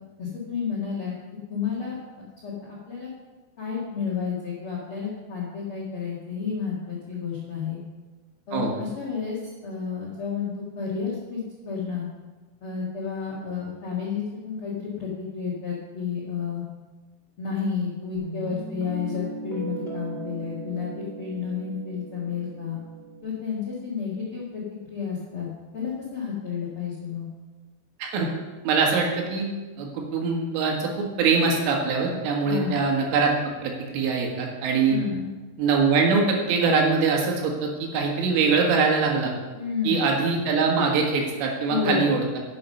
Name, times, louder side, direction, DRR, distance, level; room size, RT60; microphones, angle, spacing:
voice 1, 0.2-1.1 1.5-3.1 3.6-7.8 8.5-10.5 10.7-12.1 12.6-16.6 17.4-22.8 23.2-24.6 24.9-25.5 25.7-27.3 32.4-32.8 34.9-35.3 39.5-40.0 41.7-42.2, left 6 dB, 70° left, -4 dB, 1.2 m, -31 dB
Guitar, 18.1-23.2, right 3 dB, 20° left, 1.5 m, -38 dB
voice 2, 28.6-29.5 29.8-33.3 33.6-35.0 35.6-39.3 39.8-42.4, right 4 dB, 80° right, 0 dB, 4.1 m, -23 dB
11.0 x 8.5 x 5.5 m, 1.3 s
omnidirectional pair, 5.6 m